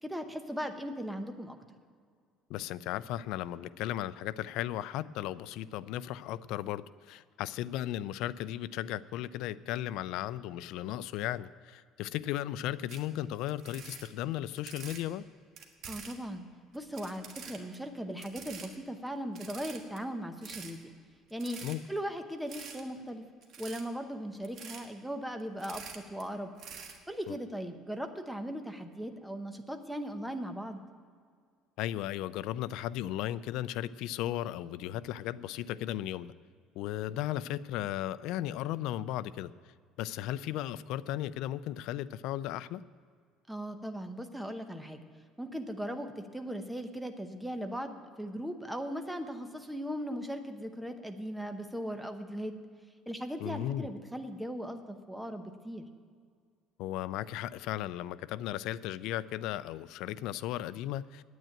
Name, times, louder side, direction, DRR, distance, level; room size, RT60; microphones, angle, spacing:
voice 1, 0.0-1.6 15.9-16.4 16.7-20.8 21.3-21.6 21.9-23.2 23.6-26.5 27.1-30.8 43.5-45.0 45.4-52.6 53.1-55.8, equal, ahead, 6 dB, 0.8 m, -38 dB
voice 2, 2.5-15.2 21.6-21.8 27.3-27.4 31.8-36.3 36.8-39.5 40.0-42.8 53.4-53.9 56.8-61.2, left 13 dB, 70° left, 16 dB, 0.4 m, -36 dB
sound 1, 12.9-13.0 13.5-15.0 15.6-16.2 16.7-17.8 18.2-18.7 19.1-19.2 19.3-20.0 20.4-20.7 21.3-22.0 22.5-22.8 23.4-23.8 24.4-24.8 25.4-26.2 26.6-27.0, right 6 dB, 45° right, 1.4 m, -46 dB
9.3 x 8.9 x 8.9 m, 2.1 s
cardioid pair, 160°, 0 cm